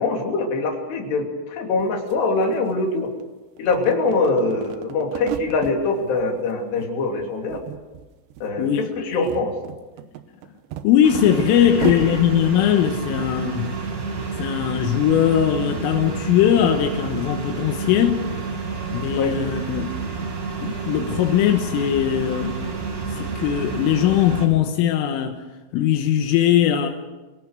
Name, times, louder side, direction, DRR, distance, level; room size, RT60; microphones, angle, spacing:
voice 1, 0.0-3.1 3.6-7.6 8.4-9.5 11.6-12.2 19.2-19.4, left 3 dB, 60° left, 1 dB, 4.9 m, -23 dB
sound 1, 1.8-1.9 2.1-3.2 3.6-5.8 6.2-6.9 7.2-8.1 8.3-8.5 9.0-12.2, right 12 dB, 75° right, 2.8 m, -33 dB
voice 2, 8.6-8.9 10.8-13.7 14.4-18.3 18.9-20.0 20.6-22.5 23.1-25.4 25.7-26.9, left 10 dB, 85° left, 5 dB, 3.7 m, -20 dB
sound 2, 11.0-24.5, right 4 dB, 40° right, 1.2 m, -29 dB
27.5 x 18.5 x 6.6 m, 1.2 s
omnidirectional pair, 5.9 m